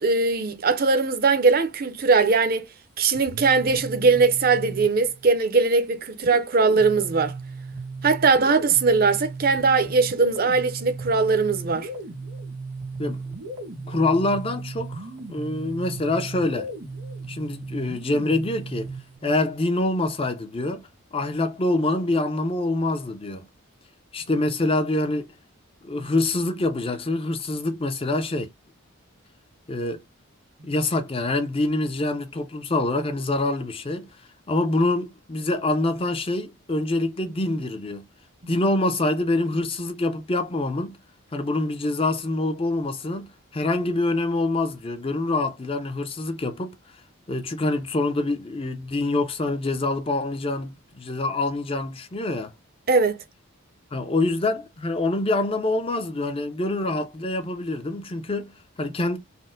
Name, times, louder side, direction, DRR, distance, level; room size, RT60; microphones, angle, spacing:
voice 1, 0.0-2.7 3.0-7.3 8.0-11.9 38.4-38.5 52.9-53.2, right 4 dB, 45° right, 0.6 m, -20 dB
sound 1, 3.1-5.3 6.2-19.2, right 3 dB, 90° right, 1.8 m, -36 dB
voice 2, 13.9-16.7 17.3-18.9 19.2-20.9 21.1-23.5 24.1-25.3 25.8-28.5 29.7-30.0 30.6-34.1 34.5-38.1 38.5-41.0 41.3-46.8 47.3-52.5 53.9-59.2, left 2 dB, 25° left, 0.5 m, -25 dB
4.2 x 2.1 x 3.7 m
head